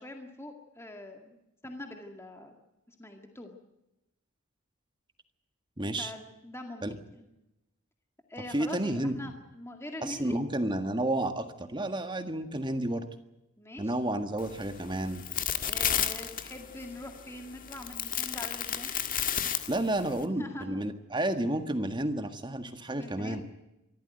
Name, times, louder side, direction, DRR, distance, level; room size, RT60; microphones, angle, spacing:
voice 1, 0.0-1.4 1.6-2.5 2.9-3.6 6.0-7.3 8.3-10.4 13.6-13.9 15.6-18.9 20.2-20.7 22.9-23.4, left 1 dB, 10° left, 4 dB, 2.0 m, -43 dB
voice 2, 5.8-6.1 6.8-6.9 8.5-9.3 10.0-13.1 13.8-15.2 19.7-23.4, right 1 dB, 20° right, 8 dB, 1.7 m, -31 dB
sound 1, 14.4-20.2, left 9 dB, 40° left, 1.7 m, -33 dB
25.0 x 14.0 x 9.1 m, 0.93 s
head